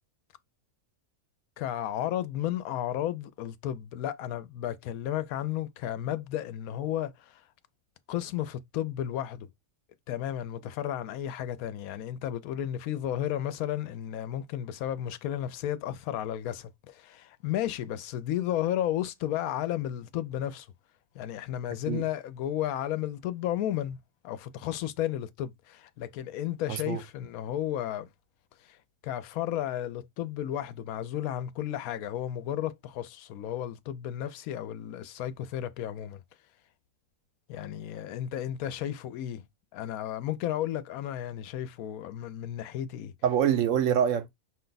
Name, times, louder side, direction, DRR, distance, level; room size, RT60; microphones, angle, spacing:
voice 1, 1.6-7.4 8.1-9.5 10.1-20.7 21.1-24.0 24.2-28.1 28.7-28.8 29.0-36.2 37.5-39.4 39.7-43.1, left 11 dB, 85° left, 1.0 m, -33 dB
voice 2, 26.7-27.0 43.2-44.3, right 9 dB, 70° right, 0.9 m, -25 dB
6.0 x 2.2 x 3.9 m
omnidirectional pair, 1.5 m